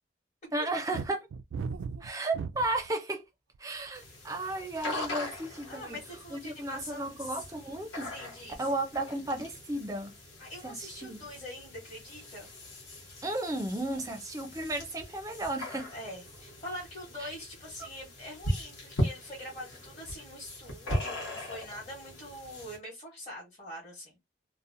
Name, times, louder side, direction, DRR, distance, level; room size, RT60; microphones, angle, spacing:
voice 1, 0.5-1.3 2.0-3.2 3.6-6.0 6.3-8.1 8.6-10.1 10.6-11.2 13.2-15.9 17.2-17.3 17.8-17.9, right 2 dB, 20° right, 0.4 m, -34 dB
sound 1, 0.9-2.9 3.5-4.0, right 5 dB, 80° right, 0.3 m, -37 dB
sound 2, 3.9-22.8, left 1 dB, 75° left, 1.1 m, -39 dB
voice 2, 5.7-7.4 8.0-8.7 10.4-12.5 15.9-24.2, left 1 dB, 35° left, 1.0 m, -44 dB
2.7 x 2.0 x 2.5 m
head